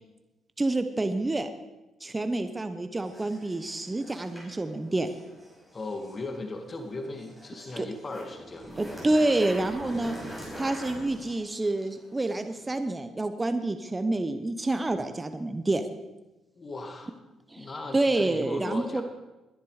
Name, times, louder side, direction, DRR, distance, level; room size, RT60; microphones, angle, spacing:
voice 1, 0.6-1.5 2.0-5.1 7.8-7.9 8.8-10.2 10.6-15.9 17.5-19.0, right 2 dB, 20° right, 9 dB, 1.0 m, -28 dB
sound 1, 3.0-12.9, equal, 5° left, 6.2 m, -44 dB
voice 2, 5.7-8.8 16.6-17.1 17.6-19.0, left 2 dB, 35° left, 5 dB, 2.1 m, -37 dB
21.5 x 10.0 x 5.0 m, 1.0 s
cardioid pair, 90°, 0 cm